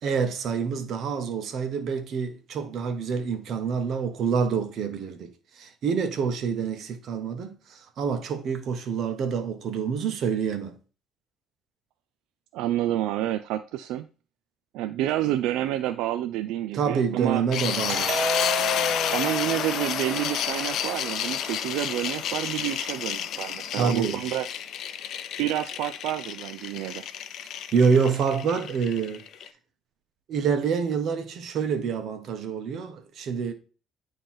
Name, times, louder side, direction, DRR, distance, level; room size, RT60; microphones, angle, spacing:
voice 1, 0.0-10.8 16.7-18.1 23.7-24.2 27.7-29.2 30.3-33.5, right 6 dB, 60° right, 1.2 m, -27 dB
voice 2, 12.5-14.1 14.7-17.4 19.1-24.5 25.4-27.0, right 13 dB, 90° right, 0.3 m, -29 dB
sound 1, 17.5-29.5, left 9 dB, 65° left, 0.5 m, -30 dB
Doorbell, 17.9-21.2, right 4 dB, 35° right, 1.5 m, -33 dB
9.3 x 3.2 x 4.3 m
cardioid pair, 110°, 0 cm